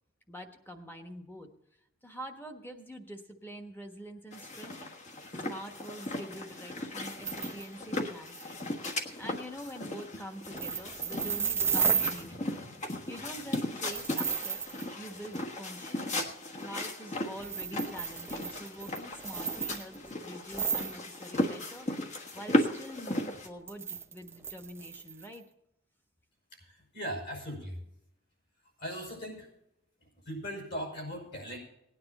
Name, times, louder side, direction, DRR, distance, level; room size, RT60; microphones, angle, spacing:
voice 1, 0.3-1.5 2.0-4.8 5.5-12.7 13.1-14.6 15.0-21.9 22.3-25.4, equal, 10° left, 5 dB, 1.3 m, -45 dB
sound 1, 4.3-23.5, left 1 dB, 35° left, 1.3 m, -36 dB
sound 2, 7.2-7.7 8.0-8.1 8.3-8.4 10.5-12.2 13.8-14.9 15.3-15.4 17.4-20.1 20.5-21.0 23.7-25.4, right 6 dB, 10° right, 0.5 m, -33 dB
voice 2, 26.6-27.8 28.8-29.5 30.3-31.6, equal, 55° left, 1 dB, 5.6 m, -39 dB
18.0 x 9.7 x 4.2 m, 0.81 s
head